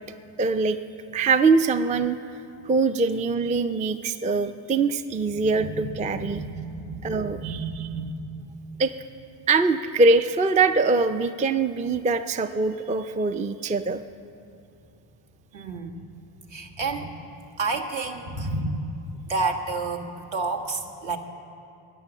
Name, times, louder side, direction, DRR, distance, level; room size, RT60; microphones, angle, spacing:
voice 1, 0.4-0.8 1.1-2.2 2.7-6.4 7.0-7.9 8.8-8.9 9.5-14.0, right 3 dB, 15° right, 10 dB, 0.3 m, -23 dB
voice 2, 5.6-8.3 8.6-8.8 15.5-16.1 16.5-17.1 17.6-19.0 19.3-21.2, right 3 dB, 65° right, 2 dB, 1.6 m, -30 dB
14.5 x 9.2 x 7.1 m, 2.8 s
cardioid pair, 75°, 50 cm